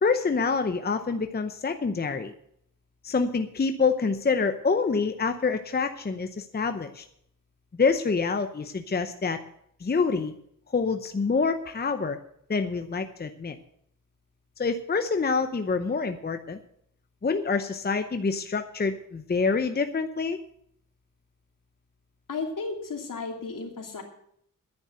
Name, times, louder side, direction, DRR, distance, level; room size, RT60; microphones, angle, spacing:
voice 1, 0.0-2.3 3.0-7.0 7.8-9.4 9.8-10.3 10.7-12.2 12.5-13.6 14.6-16.6 17.2-20.4, left 4 dB, 30° left, 8 dB, 0.7 m, -26 dB
voice 2, 22.3-24.0, left 4 dB, 75° left, 2 dB, 2.9 m, -34 dB
10.5 x 9.3 x 7.9 m, 0.69 s
wide cardioid pair, 130°, 33 cm